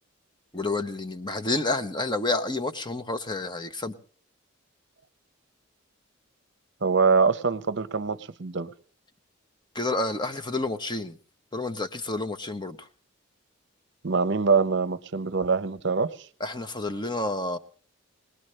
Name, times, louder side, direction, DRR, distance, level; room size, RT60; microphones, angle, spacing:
voice 1, 0.5-4.0 9.7-11.2 11.5-12.9 16.4-17.6, left 2 dB, 20° left, 0.9 m, -29 dB
voice 2, 6.8-8.7 14.0-16.1, right 4 dB, 55° right, 0.8 m, -24 dB
21.5 x 20.0 x 3.2 m
head